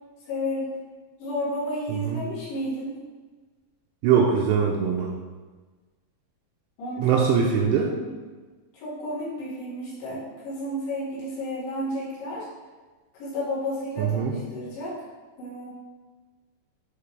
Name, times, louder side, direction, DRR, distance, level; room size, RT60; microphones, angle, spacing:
voice 1, 0.3-0.8 1.2-3.0 6.8-7.2 7.6-8.1 8.7-12.5 13.1-15.0 15.4-15.7, left 1 dB, 75° left, -9 dB, 4.1 m, -32 dB
voice 2, 1.9-2.2 4.0-5.2 7.0-7.9 14.0-14.3, right 7 dB, 85° right, -2 dB, 2.7 m, -22 dB
9.7 x 3.3 x 3.3 m, 1.3 s
omnidirectional pair, 5.2 m